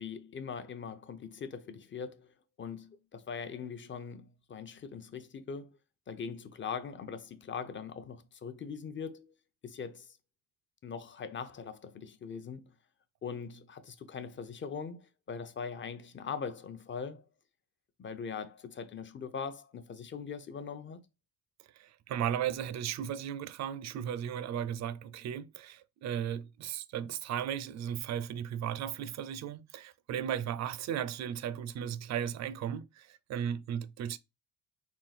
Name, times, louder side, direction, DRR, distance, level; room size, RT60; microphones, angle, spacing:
voice 1, 0.0-2.3 2.6-5.8 6.1-9.3 9.6-10.1 10.8-12.7 13.2-15.0 15.3-17.2 18.0-21.0, left 6 dB, 40° left, 0.7 m, -41 dB
voice 2, 21.7-34.2, right 9 dB, 60° right, 0.5 m, -36 dB
3.6 x 2.4 x 4.1 m
cardioid pair, 90°, 30 cm